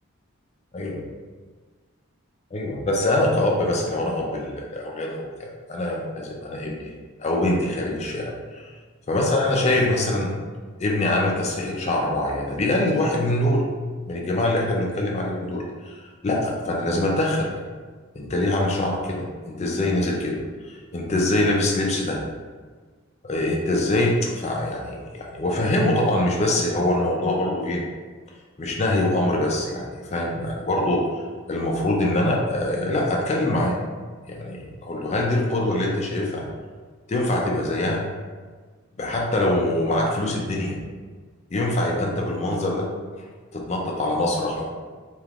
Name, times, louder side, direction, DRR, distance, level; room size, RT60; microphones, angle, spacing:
voice 1, 0.7-1.0 2.5-6.9 7.2-8.7 9.1-10.3 10.8-13.7 14.1-17.5 18.1-20.4 20.6-22.2 23.2-27.8 28.6-33.8 34.3-36.5 37.1-38.1 39.0-40.8 41.5-42.9 43.5-44.6, left 1 dB, 30° left, -1 dB, 0.4 m, -24 dB
3.4 x 2.8 x 2.4 m, 1.5 s
head